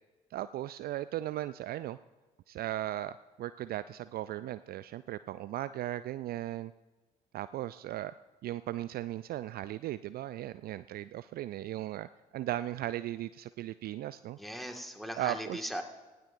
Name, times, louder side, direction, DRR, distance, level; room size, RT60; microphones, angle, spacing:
voice 1, 0.3-2.0 2.5-6.7 7.3-8.1 8.4-12.1 12.3-14.4 15.2-15.7, right 13 dB, 50° right, 14 dB, 0.4 m, -37 dB
voice 2, 14.4-15.8, equal, ahead, 3 dB, 1.8 m, -38 dB
18.5 x 16.5 x 2.6 m, 1.3 s
figure-of-eight pair, 45°, 20 cm